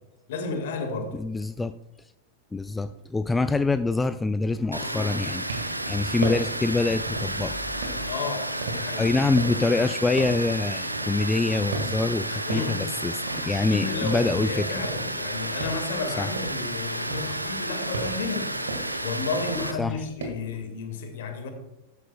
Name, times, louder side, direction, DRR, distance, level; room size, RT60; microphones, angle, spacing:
voice 1, 0.3-1.2 8.1-9.1 12.5-12.9 13.4-18.6 19.0-21.5, left 4 dB, 55° left, 6 dB, 1.9 m, -32 dB
voice 2, 1.1-1.8 2.5-7.6 9.0-14.9 16.2-16.3 19.8-20.0, left 3 dB, 10° left, 12 dB, 0.3 m, -25 dB
Water, 4.7-19.7, right 1 dB, 85° right, 0.6 m, -32 dB
sound 1, 5.5-5.9 6.2-6.6 7.1-7.4 7.8-11.5 11.7-12.2 12.5-14.4 14.7-16.7 17.1-20.3, right 3 dB, 65° right, 1.8 m, -36 dB
13.0 x 10.0 x 2.3 m, 0.94 s
figure-of-eight pair, 90°, 0 cm